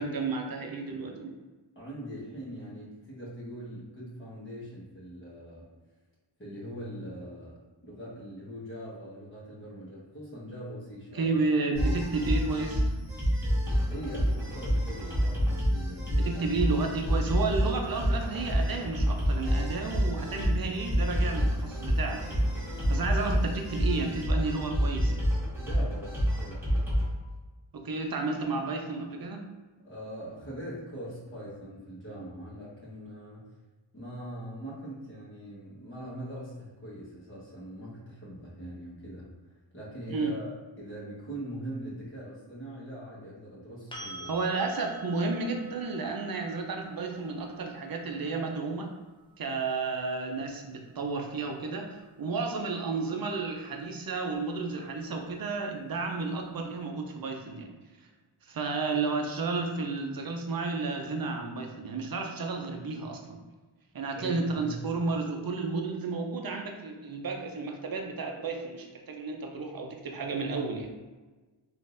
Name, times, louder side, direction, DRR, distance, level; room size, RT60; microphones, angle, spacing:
voice 1, 0.0-1.4 11.1-12.9 16.1-22.4 22.9-25.3 27.7-29.4 40.1-40.3 44.2-48.9 49.4-57.7 58.4-63.4 63.9-70.9, right 3 dB, 50° right, 3 dB, 0.6 m, -32 dB
voice 2, 1.7-5.7 6.4-7.6 7.8-11.3 13.8-16.4 25.6-26.7 29.8-33.5 33.9-39.3 39.7-40.5 40.8-44.3 64.2-64.9, right 1 dB, 25° left, -7 dB, 1.2 m, -42 dB
sound 1, 11.7-27.1, equal, 5° right, 1.4 m, -28 dB
sound 2, 43.9-51.7 54.5-54.6, right 2 dB, 10° left, 0.6 m, -50 dB
3.8 x 2.5 x 2.5 m, 1.2 s
wide cardioid pair, 55°, 46 cm